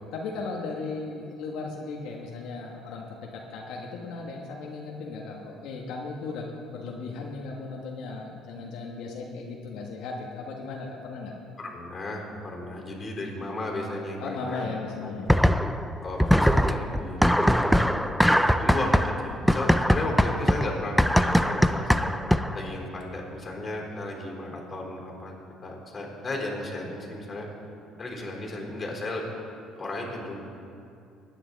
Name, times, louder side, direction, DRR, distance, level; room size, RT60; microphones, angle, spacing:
voice 1, 0.1-11.3 14.2-15.3, left 3 dB, 75° left, -1 dB, 1.4 m, -36 dB
voice 2, 11.6-14.7 15.0-15.3 16.0-18.9 19.2-22.1 22.5-25.3 25.6-27.5 28.0-29.2 29.8-30.4, left 2 dB, 25° left, -2 dB, 4.0 m, -35 dB
sound 1, 15.3-15.9 16.2-22.7, equal, ahead, 0.4 m, -22 dB
20.0 x 10.0 x 4.1 m, 2.5 s
cardioid pair, 125°, 0 cm